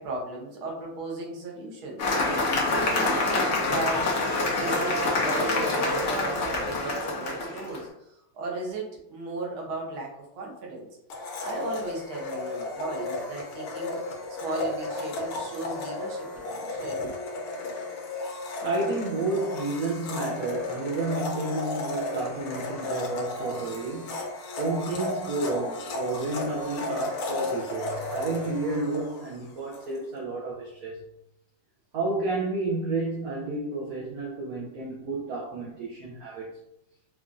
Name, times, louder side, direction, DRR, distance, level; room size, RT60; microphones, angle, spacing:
voice 1, 0.0-4.1 4.5-10.9 11.2-14.0 14.4-17.1, right 2 dB, 90° right, -1 dB, 1.8 m, -36 dB
Cheering / Applause, 2.0-7.8, left 2 dB, 60° left, 0.8 m, -26 dB
Domestic sounds home sounds, 11.1-29.9, left 2 dB, 85° left, 1.5 m, -34 dB
voice 2, 18.6-24.2 24.6-31.0 31.9-36.5, right 2 dB, 70° right, -3 dB, 0.8 m, -31 dB
4.7 x 2.4 x 2.5 m, 0.79 s
omnidirectional pair, 2.2 m